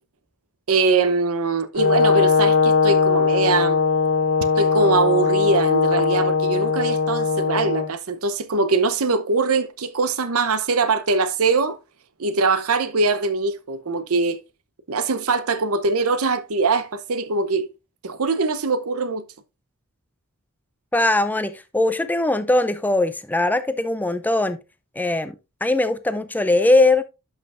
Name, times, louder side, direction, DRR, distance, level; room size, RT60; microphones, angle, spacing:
voice 1, 0.7-3.8 4.6-11.8 12.2-14.4 14.9-17.7 18.0-19.2, right 4 dB, 70° right, 0.8 m, -22 dB
Brass instrument, 1.8-7.9, left 5 dB, 85° left, 1.8 m, -19 dB
voice 2, 20.9-24.6 25.0-25.4 25.6-27.0, left 2 dB, 10° left, 0.4 m, -20 dB
11.5 x 5.6 x 2.5 m
head